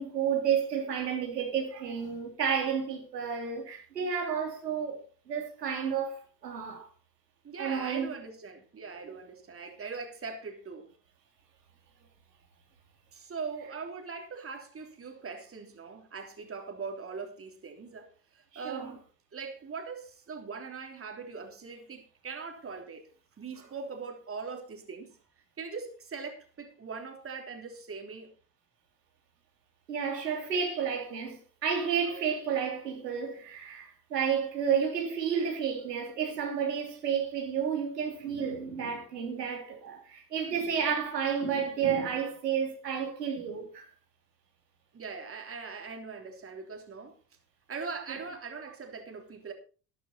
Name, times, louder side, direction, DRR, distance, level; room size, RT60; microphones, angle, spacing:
voice 1, 0.0-6.9 7.6-8.1 9.0-9.1 18.6-18.9 29.9-43.9, right 7 dB, 85° right, 3.6 m, -31 dB
voice 2, 7.4-10.9 13.1-19.0 19.3-23.1 23.4-28.3 32.0-32.2 44.9-47.1 47.7-49.5, right 5 dB, 30° right, 3.4 m, -41 dB
13.0 x 11.5 x 4.4 m
hypercardioid pair, 75°, 47 cm